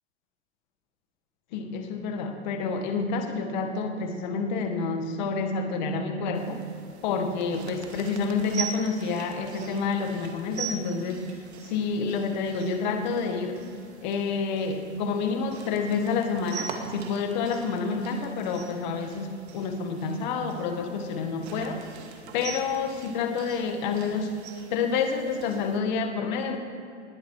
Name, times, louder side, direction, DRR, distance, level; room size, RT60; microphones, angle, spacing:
voice 1, 1.5-6.6 7.0-11.4 11.7-13.6 14.0-21.8 22.3-24.3 24.7-26.6, left 4 dB, 40° left, 5 dB, 1.5 m, -28 dB
sound 1, 6.3-25.8, right 6 dB, 60° right, 2.2 m, -43 dB
20.0 x 10.5 x 4.7 m, 2.6 s
hypercardioid pair, 160°, 37 cm